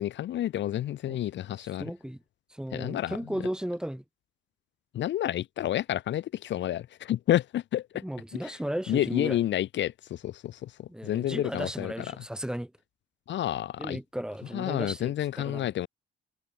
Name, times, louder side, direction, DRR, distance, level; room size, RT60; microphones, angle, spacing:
voice 1, 0.0-1.9 2.7-3.2 4.9-7.8 8.3-8.4 8.9-10.5 11.0-11.9 13.3-14.0 14.5-15.9, left 12 dB, 65° left, 0.7 m, -29 dB
voice 2, 1.6-2.2 2.5-4.0 7.9-9.4 10.9-12.7 13.8-15.7, equal, 5° right, 2.0 m, -35 dB
cardioid pair, 90°, 20 cm